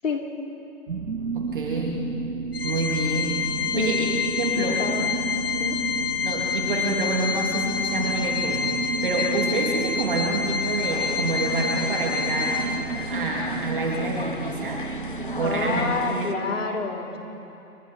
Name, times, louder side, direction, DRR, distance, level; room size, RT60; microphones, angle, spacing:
sound 1, 0.9-15.9, right 3 dB, 80° right, 2.1 m, -32 dB
voice 1, 1.3-2.0 2.6-3.4 3.8-4.1 4.4-4.8 6.2-8.7 9.0-12.6 13.1-14.8 15.4-16.3, right 3 dB, 35° right, -2 dB, 3.1 m, -27 dB
Organ, 2.5-13.1, left 6 dB, 80° left, 3.1 m, -28 dB
voice 2, 4.5-5.1 5.6-5.8 15.2-17.2, left 4 dB, 55° left, 0 dB, 4.0 m, -28 dB
sound 2, 10.9-16.3, left 3 dB, 35° left, 0.8 m, -38 dB
29.5 x 25.0 x 4.5 m, 2.9 s
hypercardioid pair, 180°, 45 cm